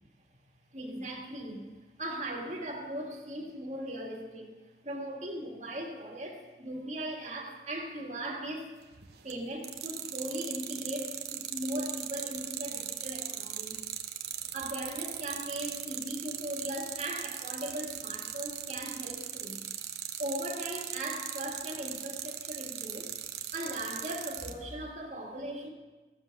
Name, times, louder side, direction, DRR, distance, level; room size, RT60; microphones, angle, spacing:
voice 1, 0.7-1.7 2.0-4.5 4.8-8.7 9.2-13.8 14.5-19.6 20.2-23.1 23.5-25.7, right 1 dB, 40° right, 0 dB, 1.9 m, -38 dB
sound 1, 8.9-9.3 9.6-24.5, right 11 dB, 65° right, 0.9 m, -38 dB
15.0 x 7.5 x 6.0 m, 1.3 s
head